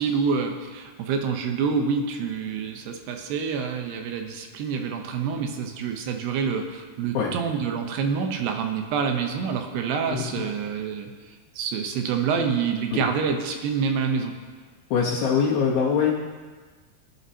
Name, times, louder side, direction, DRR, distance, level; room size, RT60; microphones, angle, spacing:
voice 1, 0.0-11.1 11.6-14.3, right 6 dB, 80° right, 4 dB, 2.9 m, -27 dB
voice 2, 10.1-10.4 12.9-13.0 14.9-16.1, left 6 dB, 70° left, -5 dB, 2.7 m, -23 dB
21.0 x 9.4 x 2.8 m, 1.4 s
omnidirectional pair, 4.8 m